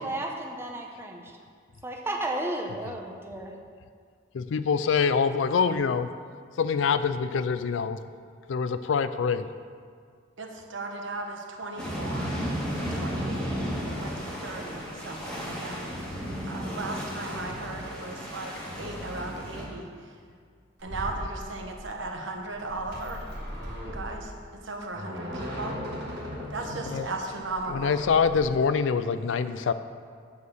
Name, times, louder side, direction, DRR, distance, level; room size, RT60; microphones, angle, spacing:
voice 1, 0.0-1.3 1.8-3.5, right 1 dB, 15° right, 1 dB, 0.7 m, -33 dB
voice 2, 4.3-6.1 6.6-8.0 8.5-9.5 26.8-27.1 27.7-29.7, left 5 dB, 75° left, 12 dB, 0.4 m, -25 dB
voice 3, 10.4-12.4 12.8-16.1 16.5-18.5 18.8-19.9 20.8-23.2 23.8-24.3 24.6-25.7 26.5-28.0, right 2 dB, 75° right, 2 dB, 1.0 m, -37 dB
sound 1, 11.8-19.6, equal, 5° left, 1.5 m, -34 dB
sound 2, 20.8-28.4, equal, 55° right, 1.9 m, -38 dB
8.2 x 4.9 x 6.3 m, 2.1 s
head